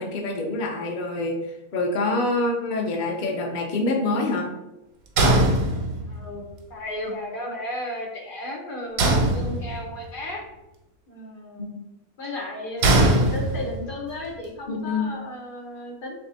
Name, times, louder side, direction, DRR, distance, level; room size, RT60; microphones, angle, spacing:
voice 1, 0.0-4.5 11.6-11.7 14.7-15.1, left 2 dB, 70° left, 1 dB, 0.4 m, -26 dB
sound 1, 5.2-6.3 9.0-10.0 12.8-13.9, right 1 dB, 90° right, 1.2 m, -20 dB
voice 2, 6.0-10.4 11.1-11.8 12.2-16.2, left 1 dB, 45° left, 0 dB, 0.9 m, -34 dB
3.4 x 2.7 x 3.9 m, 0.96 s
omnidirectional pair, 1.5 m